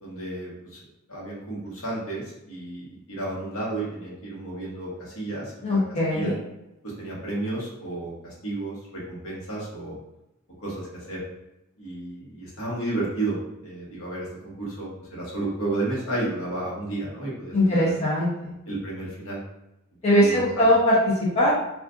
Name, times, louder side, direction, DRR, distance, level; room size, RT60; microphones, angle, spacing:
voice 1, 0.0-0.8 1.1-5.8 6.1-6.3 7.0-10.0 10.6-11.2 11.8-17.9 18.7-19.4 20.1-20.7, right 2 dB, 75° left, -4 dB, 1.1 m, -32 dB
voice 2, 5.6-6.4 17.5-18.5 20.0-21.5, equal, 30° left, -7 dB, 0.8 m, -21 dB
2.4 x 2.4 x 3.6 m, 0.88 s
head